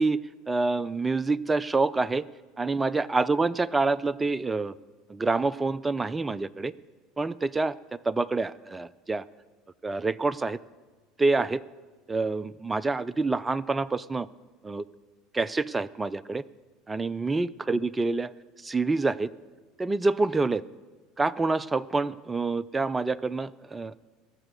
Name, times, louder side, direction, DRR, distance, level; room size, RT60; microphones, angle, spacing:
voice 1, 0.0-2.2 2.6-4.7 5.1-6.7 7.2-7.8 8.1-9.2 9.8-10.6 11.2-11.6 12.1-14.3 14.6-14.8 15.3-16.4 16.9-18.3 18.6-19.3 19.8-20.6 21.2-23.9, right 3 dB, 15° right, 20 dB, 0.3 m, -27 dB
17.5 x 6.9 x 6.6 m, 1.3 s
figure-of-eight pair, 70°, 0 cm